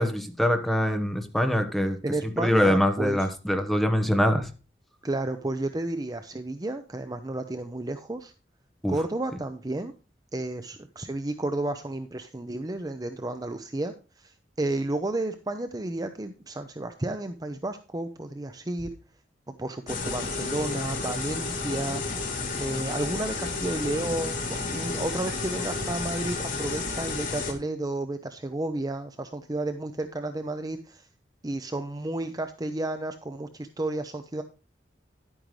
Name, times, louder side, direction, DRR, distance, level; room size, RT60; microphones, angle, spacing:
voice 1, 0.0-2.0 2.4-4.5 8.8-8.9, equal, ahead, 1.1 m, -24 dB
voice 2, 2.0-3.3 5.0-8.3 8.9-9.9 10.3-18.9 19.6-22.0 22.6-31.1 31.4-34.4, right 2 dB, 20° right, 0.6 m, -32 dB
sound 1, 19.9-27.5, left 3 dB, 50° left, 2.7 m, -31 dB
11.0 x 8.9 x 3.2 m
head